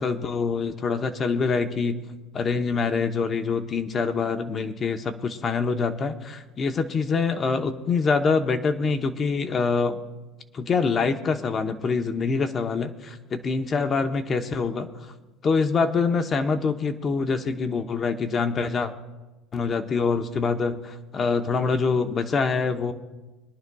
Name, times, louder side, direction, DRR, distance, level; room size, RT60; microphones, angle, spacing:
voice 1, 0.0-2.1 2.3-10.0 10.5-14.9 15.4-18.9 19.5-22.9, left 4 dB, 25° left, 7 dB, 0.8 m, -25 dB
23.5 x 11.0 x 2.3 m, 1.1 s
cardioid pair, 150°, 0 cm